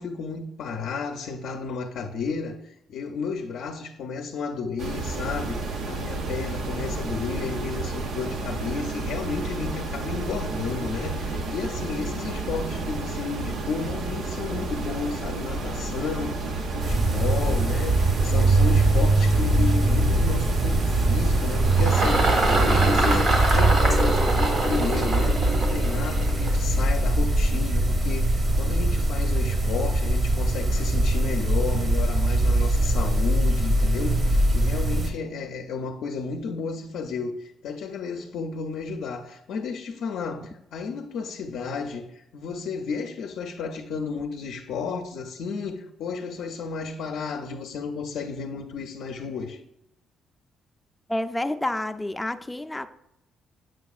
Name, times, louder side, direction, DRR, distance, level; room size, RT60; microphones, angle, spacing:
voice 1, 0.0-49.6, left 5 dB, 80° left, 0.5 m, -32 dB
sound 1, 4.8-22.8, right 2 dB, 75° right, 0.7 m, -31 dB
sound 2, 16.8-35.1, right 2 dB, 40° right, 0.9 m, -22 dB
Engine, 20.9-27.5, right 2 dB, 60° right, 1.4 m, -25 dB
voice 2, 51.1-52.9, left 1 dB, 10° left, 0.4 m, -29 dB
7.5 x 5.8 x 2.4 m
cardioid pair, 90°, 0 cm